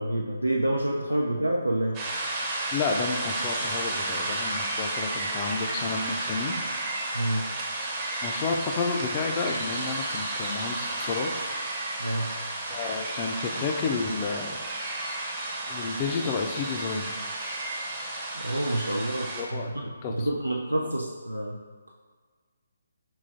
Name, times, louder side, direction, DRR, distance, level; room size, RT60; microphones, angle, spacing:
voice 1, 0.0-2.1 7.1-7.5 12.0-12.4 18.3-21.6, right 1 dB, 90° right, -1 dB, 0.3 m, -28 dB
sound 1, 1.9-19.4, right 2 dB, 20° right, 0.7 m, -32 dB
voice 2, 2.7-6.6 8.2-11.3 12.7-14.6 15.7-17.2 18.8-18.9 19.3-19.7 20.0-20.3, left 4 dB, 25° left, 2 dB, 0.4 m, -31 dB
5.6 x 3.0 x 2.6 m, 1.5 s
figure-of-eight pair, 140°, 0 cm